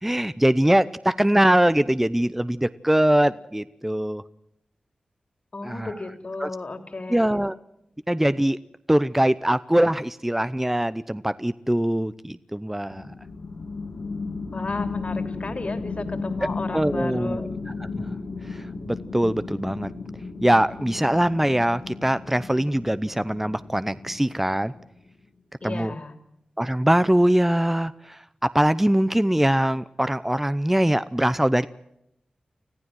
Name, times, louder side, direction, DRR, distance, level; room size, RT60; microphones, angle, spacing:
voice 1, 0.0-4.2 5.6-5.9 6.4-6.5 7.1-7.5 8.1-8.6 8.9-13.1 16.7-17.5 18.0-18.1 18.5-19.9 20.4-24.7 25.6-25.9 26.6-31.7, right 1 dB, 10° right, 15 dB, 0.7 m, -22 dB
voice 2, 5.5-7.3 14.5-17.4 25.6-26.1, left 2 dB, 50° left, 8 dB, 3.1 m, -33 dB
sound 1, 12.9-25.0, left 4 dB, 75° left, 2.7 m, -34 dB
25.0 x 15.0 x 7.7 m, 0.80 s
cardioid pair, 45°, 3 cm